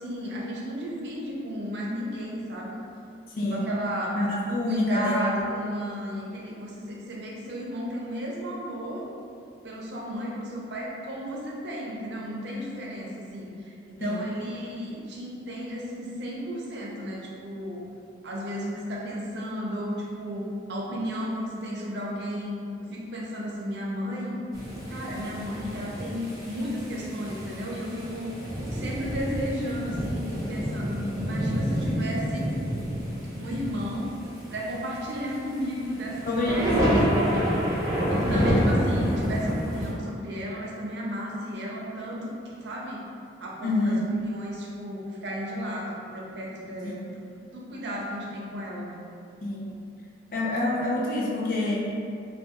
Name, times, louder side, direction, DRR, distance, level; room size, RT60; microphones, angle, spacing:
voice 1, 0.0-2.8 3.4-4.2 4.6-9.1 9.6-17.9 18.2-24.4 24.9-28.4 28.7-32.5 33.3-34.1 34.5-37.6 38.1-43.1 43.4-47.1 47.5-49.1, equal, 70° right, -3 dB, 0.5 m, -34 dB
voice 2, 3.4-3.7 4.2-5.2 14.0-14.2 36.3-37.0 38.3-38.6 43.6-44.2 46.8-47.2 49.4-49.8 50.3-52.0, left 1 dB, 50° left, -4 dB, 0.4 m, -27 dB
sound 1, 24.5-39.9, equal, 20° right, 0.4 m, -28 dB
2.3 x 2.2 x 2.8 m, 2.4 s
head